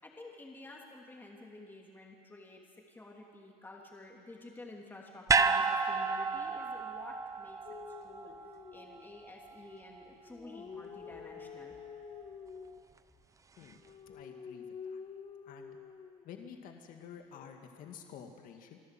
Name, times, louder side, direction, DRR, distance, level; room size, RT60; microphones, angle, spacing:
voice 1, 0.0-7.6 8.0-8.3 8.7-11.8, left 2 dB, 10° left, -1 dB, 2.9 m, -51 dB
sound 1, 5.3-9.6 9.9-10.0, right 4 dB, 20° right, 0.8 m, -31 dB
sound 2, 7.7-9.3 10.1-12.8 13.7-16.2 17.3-17.9, left 6 dB, 35° left, 1.4 m, -48 dB
voice 2, 13.6-15.0 15.5-15.8 16.2-18.8, left 7 dB, 55° left, 4 dB, 2.1 m, -50 dB
25.5 x 13.5 x 7.7 m, 2.2 s
supercardioid pair, 110°, 17 cm